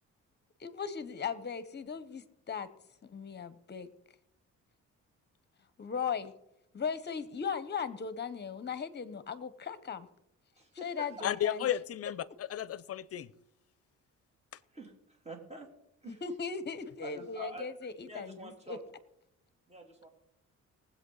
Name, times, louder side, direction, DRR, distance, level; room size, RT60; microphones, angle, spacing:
voice 1, 0.6-2.7 3.0-3.9 5.8-6.3 6.7-10.1 10.8-11.7 16.0-18.8, left 6 dB, 35° left, 14 dB, 1.0 m, -38 dB
voice 2, 10.6-11.3 14.7-15.7 16.0-16.2 17.0-17.7 18.0-18.8 19.7-20.1, right 1 dB, 20° right, 2 dB, 3.1 m, -46 dB
voice 3, 11.2-13.3, left 10 dB, 50° left, 19 dB, 0.6 m, -33 dB
19.5 x 8.1 x 4.0 m, 0.81 s
cardioid pair, 90°, 30 cm